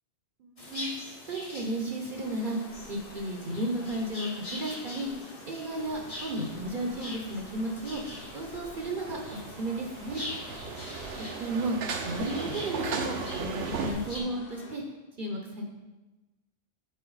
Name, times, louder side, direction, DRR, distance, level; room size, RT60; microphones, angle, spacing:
voice 1, 0.4-0.9 1.3-2.6 2.9-5.1 5.5-8.0 8.3-9.2 9.6-10.2 11.4-11.7 12.0-14.8 15.2-15.6, right 1 dB, 55° right, 1 dB, 0.9 m, -33 dB
sound 1, 0.6-14.2, left 1 dB, 35° left, 1.2 m, -43 dB
sound 2, 2.1-14.8, left 3 dB, 65° left, 0.9 m, -50 dB
sound 3, 5.8-13.9, right 5 dB, 80° right, 0.9 m, -38 dB
7.5 x 4.4 x 3.9 m, 1.1 s
omnidirectional pair, 1.1 m